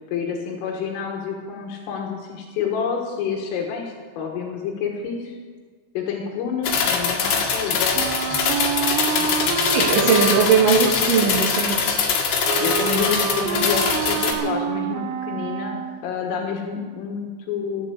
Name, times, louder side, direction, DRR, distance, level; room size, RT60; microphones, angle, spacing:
voice 1, 0.1-5.3 6.0-8.0 9.1-9.9 12.6-15.8 16.0-17.9, left 6 dB, 80° left, 0 dB, 4.1 m, -28 dB
sound 1, 6.6-14.3, left 6 dB, 60° left, 3.4 m, -22 dB
Wind instrument woodwind instrument, 7.9-16.1, right 10 dB, 90° right, 3.4 m, -28 dB
voice 2, 9.7-11.8, right 6 dB, 70° right, 0 dB, 2.0 m, -19 dB
14.0 x 11.0 x 8.3 m, 1.5 s
omnidirectional pair, 5.8 m